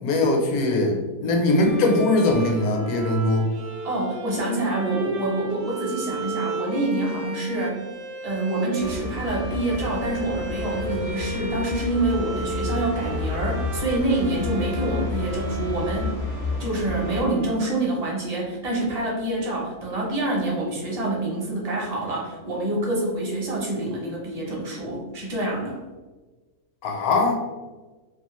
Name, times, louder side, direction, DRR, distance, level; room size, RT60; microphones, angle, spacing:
voice 1, 0.0-3.5 26.8-27.4, left 2 dB, 75° left, 1 dB, 1.1 m, -21 dB
Bowed string instrument, 1.4-18.0, right 2 dB, 75° right, 1.1 m, -35 dB
voice 2, 3.8-7.8 8.2-16.2 16.6-25.8, right 2 dB, 40° right, -3 dB, 0.5 m, -26 dB
sound 1, 8.8-17.2, left 3 dB, 50° left, 0.6 m, -31 dB
2.7 x 2.5 x 3.0 m, 1.2 s
omnidirectional pair, 1.6 m